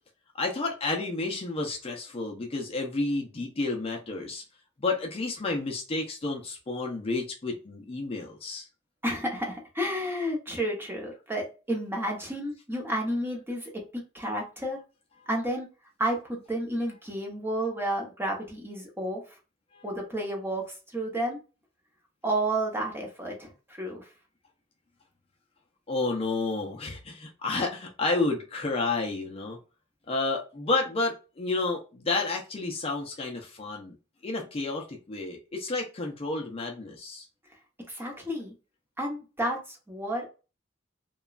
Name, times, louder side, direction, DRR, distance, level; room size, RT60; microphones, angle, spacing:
voice 1, 0.3-4.4 4.8-8.7 19.7-19.8 25.9-29.6 30.1-33.9 34.2-37.2, left 3 dB, 30° left, 1 dB, 0.5 m, -30 dB
voice 2, 9.0-14.8 15.3-15.7 16.0-19.2 19.8-21.4 22.2-24.1 37.9-38.5 39.0-40.2, right 1 dB, 10° right, 0 dB, 0.8 m, -31 dB
3.0 x 2.2 x 2.3 m, 0.32 s
head